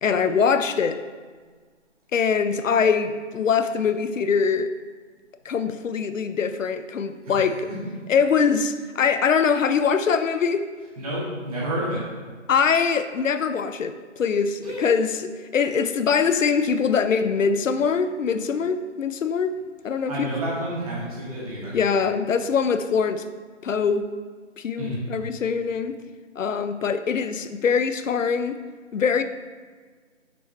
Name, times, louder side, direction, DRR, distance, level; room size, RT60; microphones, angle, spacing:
voice 1, 0.0-1.0 2.1-4.7 5.4-7.7 8.1-10.7 12.5-19.5 19.8-20.3 21.7-23.2 23.6-24.1 24.6-26.0 26.4-28.6 28.9-29.2, left 6 dB, 90° left, 11 dB, 0.6 m, -23 dB
voice 2, 7.3-7.8 11.0-12.0 14.6-14.9 20.1-21.7 24.8-25.0, equal, 30° right, -6 dB, 1.9 m, -30 dB
6.2 x 5.3 x 3.3 m, 1.5 s
figure-of-eight pair, 155°, 37 cm